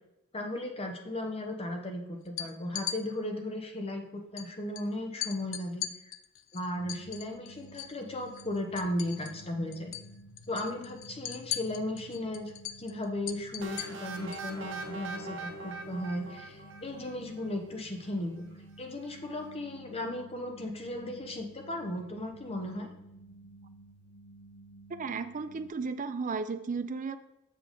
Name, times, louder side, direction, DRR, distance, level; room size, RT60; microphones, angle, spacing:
voice 1, 0.3-5.9 6.5-9.9 10.5-12.5 12.8-18.5 18.8-22.9, left 1 dB, 30° left, 3 dB, 1.0 m, -36 dB
sound 1, 2.2-3.0 4.4-4.5 4.7-4.9 5.2-8.0 8.3-9.5 9.7-10.1 10.4-14.5, left 11 dB, 65° left, 0.5 m, -39 dB
Sci-fi noise, 6.7-25.7, right 2 dB, 80° left, 0.9 m, -52 dB
sound 2, 13.6-17.4, right 2 dB, 65° right, 0.9 m, -41 dB
voice 2, 24.9-27.2, right 4 dB, 40° right, 11 dB, 0.4 m, -34 dB
6.8 x 5.2 x 3.8 m, 0.92 s
head